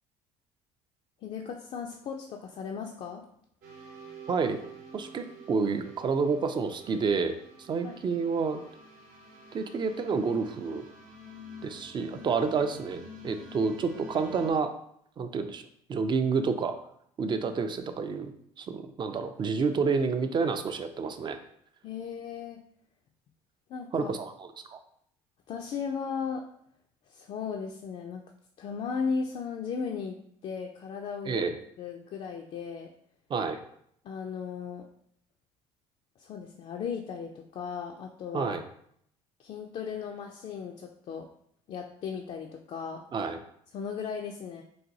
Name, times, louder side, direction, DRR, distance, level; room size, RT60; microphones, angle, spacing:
voice 1, 1.2-3.2 7.8-8.0 21.8-22.6 23.7-24.1 25.5-26.4 27.1-28.2 28.6-30.2 30.4-31.4 31.8-32.9 34.0-34.8 36.2-38.6 39.4-41.3 41.7-43.0 43.7-44.6, left 6 dB, 45° left, 2 dB, 0.4 m, -36 dB
sound 1, 3.6-14.5, equal, 70° right, 0.8 m, -49 dB
voice 2, 4.3-4.6 4.9-8.6 9.5-10.8 11.6-14.7 15.2-15.6 15.9-16.8 17.2-18.3 18.6-21.4 23.9-24.8 31.2-31.5 33.3-33.6 38.3-38.6 43.1-43.4, right 5 dB, 35° right, 8 dB, 0.4 m, -29 dB
4.0 x 2.2 x 2.6 m, 0.68 s
supercardioid pair, 85°, 14 cm